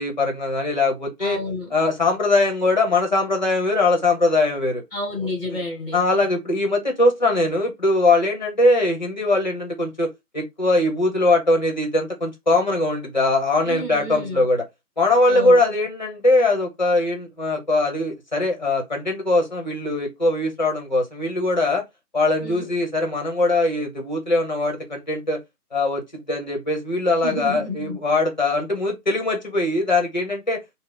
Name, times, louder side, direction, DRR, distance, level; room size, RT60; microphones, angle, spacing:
voice 1, 0.0-1.4 1.7-4.8 5.9-14.6 15.0-21.8 22.1-25.4 25.7-30.6, left 2 dB, 30° left, 0.9 m, -21 dB
voice 2, 1.2-1.7 4.9-6.0 13.6-14.5 15.3-15.6 22.4-22.7 27.2-28.0, left 1 dB, 5° left, 1.2 m, -30 dB
3.8 x 2.1 x 3.7 m
figure-of-eight pair, 165°, 45 cm